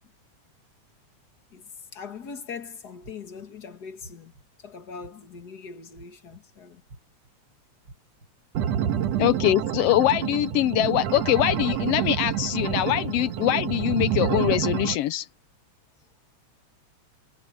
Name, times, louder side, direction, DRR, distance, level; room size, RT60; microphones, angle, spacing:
voice 1, 1.5-4.3 4.6-6.8, left 5 dB, 35° left, 2.3 m, -41 dB
sound 1, 3.0-3.4 4.0-4.4 5.0-5.4 5.9-6.4 6.9-7.3 7.8-8.3 8.8-9.2 9.8-10.3 10.8-11.2 11.7-12.1 12.7-12.8, right 2 dB, 40° right, 5.0 m, -48 dB
sound 2, 8.5-14.9, right 10 dB, 65° right, 2.3 m, -28 dB
voice 2, 9.2-15.3, left 14 dB, 80° left, 1.4 m, -23 dB
omnidirectional pair, 3.3 m